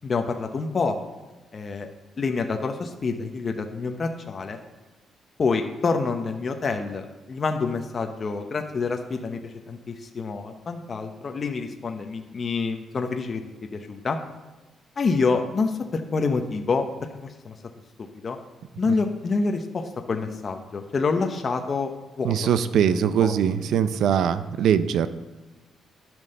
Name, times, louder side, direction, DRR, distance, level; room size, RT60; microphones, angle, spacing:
voice 1, 0.0-1.0 1.5-1.9 2.2-4.6 5.4-13.4 13.7-14.2 15.0-16.9 17.4-17.5 18.2-18.4 18.8-22.4 22.9-23.3 23.7-23.8 24.1-24.3, left 4 dB, 30° left, 4 dB, 0.7 m, -27 dB
voice 2, 22.2-25.1, right 8 dB, 70° right, 13 dB, 0.5 m, -22 dB
11.0 x 6.1 x 6.6 m, 1.1 s
cardioid pair, 165°, 0 cm